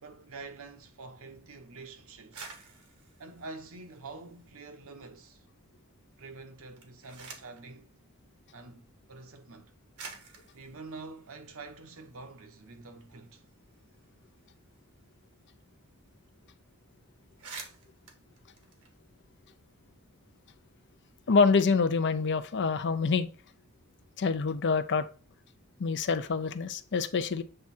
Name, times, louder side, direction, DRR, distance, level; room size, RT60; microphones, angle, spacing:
voice 1, 0.0-2.4 3.2-5.4 6.2-8.0 8.5-9.7 10.5-13.5, right 3 dB, 70° right, 0.9 m, -47 dB
sound 1, 2.2-4.7 5.1-5.8 6.6-7.7 8.7-8.8 9.5-9.6 10.0-12.3 12.6-12.7 13.0-15.6 15.9-16.0 16.3-16.5 16.9-17.0 17.2-19.4, right 5 dB, 85° right, 1.5 m, -50 dB
voice 2, 21.3-23.3 24.2-25.1 25.8-27.4, left 4 dB, 55° left, 0.6 m, -26 dB
7.8 x 3.6 x 4.3 m
head